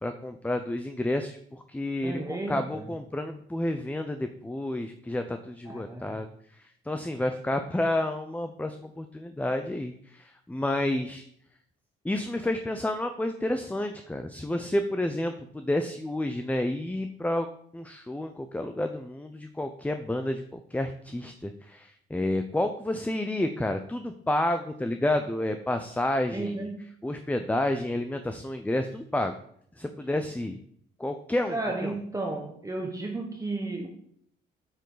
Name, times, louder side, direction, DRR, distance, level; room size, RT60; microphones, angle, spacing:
voice 1, 0.0-6.3 6.5-11.3 12.0-17.5 17.7-26.7 27.0-29.3 29.8-30.6 31.0-32.0, left 1 dB, 5° left, 7 dB, 0.6 m, -30 dB
voice 2, 2.0-2.8 5.7-6.2 26.3-26.8 31.5-33.9, right 2 dB, 15° right, 1 dB, 1.2 m, -33 dB
7.8 x 6.9 x 4.0 m, 0.66 s
cardioid pair, 90°, 20 cm